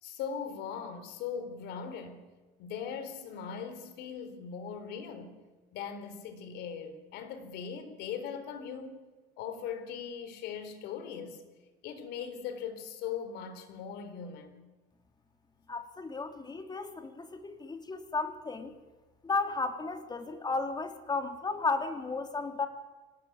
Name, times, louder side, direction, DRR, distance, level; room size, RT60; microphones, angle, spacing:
voice 1, 0.0-2.2 2.6-5.4 5.7-9.0 9.4-11.4 11.8-14.6, left 7 dB, 85° left, 10 dB, 4.0 m, -40 dB
voice 2, 15.7-18.7 19.2-22.7, left 3 dB, 25° left, 7 dB, 3.3 m, -34 dB
25.0 x 19.5 x 9.7 m, 1.2 s
cardioid pair, 110°, 17 cm